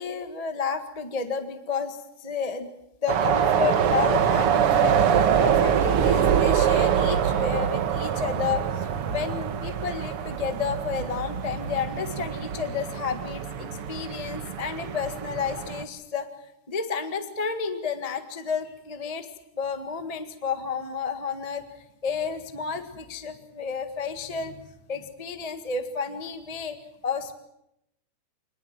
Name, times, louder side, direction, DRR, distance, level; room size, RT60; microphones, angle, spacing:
voice 1, 0.0-2.7 3.0-16.3 16.7-19.3 19.5-24.6 24.9-26.8 27.0-27.3, left 6 dB, 20° left, 7 dB, 1.2 m, -31 dB
sound 1, 3.1-15.8, right 8 dB, 55° right, 1.9 m, -24 dB
27.5 x 20.5 x 7.7 m, 0.81 s
omnidirectional pair, 3.5 m